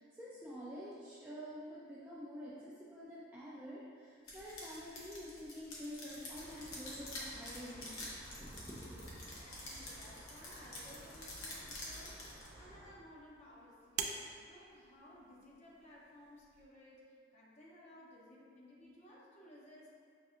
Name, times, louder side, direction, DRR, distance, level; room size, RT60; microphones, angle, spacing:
voice 1, 0.0-8.1 8.4-9.2, equal, 10° right, -9 dB, 0.4 m, -48 dB
sound 1, 4.3-12.5, left 1 dB, 80° left, 0.9 m, -48 dB
sound 2, 6.3-12.9, right 1 dB, 55° right, 0.9 m, -55 dB
voice 2, 9.3-14.1 14.5-19.9, left 1 dB, 35° left, -5 dB, 0.6 m, -58 dB
sound 3, 11.6-16.6, right 6 dB, 90° right, 0.4 m, -48 dB
6.1 x 2.6 x 2.4 m, 2.2 s
head